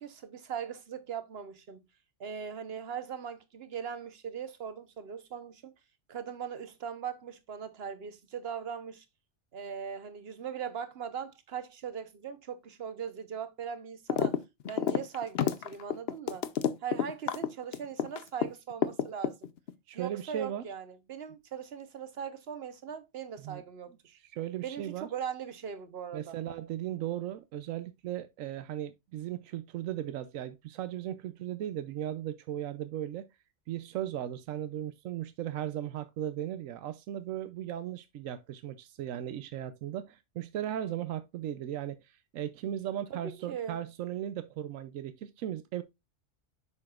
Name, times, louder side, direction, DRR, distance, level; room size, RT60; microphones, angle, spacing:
voice 1, 0.0-1.8 2.2-5.7 6.1-9.0 9.5-14.4 14.7-16.5 16.8-19.5 19.9-23.9 24.6-26.4 43.1-43.8, right 7 dB, 55° right, 1.1 m, -40 dB
sound 1, 14.1-14.4 14.6-18.5 18.8-19.7, left 8 dB, 60° left, 0.8 m, -29 dB
voice 2, 19.9-20.6 23.4-23.6 24.1-25.1 26.1-33.3 33.7-42.0 42.3-45.8, right 11 dB, 85° right, 1.0 m, -37 dB
7.6 x 5.9 x 2.4 m
omnidirectional pair, 1.3 m